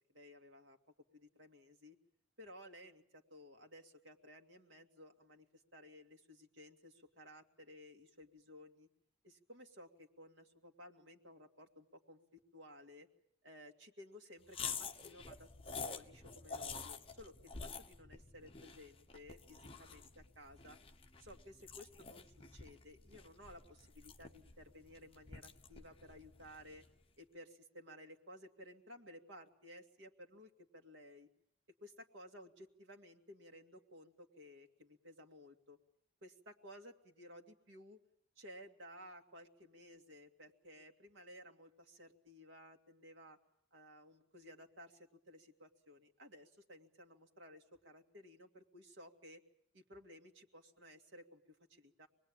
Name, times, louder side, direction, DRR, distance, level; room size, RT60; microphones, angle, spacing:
voice 1, 0.1-0.8 1.1-2.0 2.4-8.9 9.2-13.1 13.4-15.5 15.8-20.8 21.2-26.8 27.2-31.3 31.8-35.8 36.2-38.0 38.4-43.4 43.7-49.4 49.7-52.1, equal, 80° right, 4 dB, 2.4 m, -57 dB
sound 1, 14.5-27.0, left 5 dB, 30° left, 1.3 m, -49 dB
26.0 x 20.5 x 8.9 m, 0.73 s
head